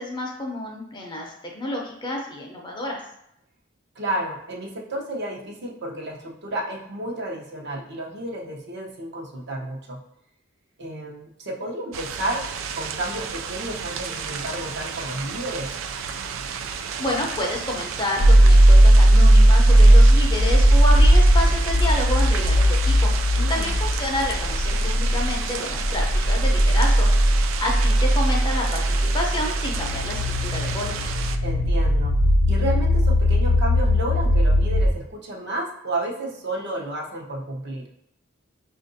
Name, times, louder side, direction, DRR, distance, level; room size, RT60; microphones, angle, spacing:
voice 1, 0.0-3.0 17.0-23.1 23.5-27.1 27.6-31.1, left 1 dB, 25° left, 0 dB, 0.6 m, -29 dB
voice 2, 3.9-10.0 10.8-12.5 12.7-15.7 23.4-23.7 31.4-32.2 32.5-37.9, right 1 dB, 60° right, -2 dB, 0.8 m, -31 dB
sound 1, 11.9-31.4, right 6 dB, 80° right, 0.3 m, -32 dB
sound 2, 18.2-34.9, equal, 85° left, 0.6 m, -17 dB
5.6 x 2.5 x 2.6 m, 0.76 s
head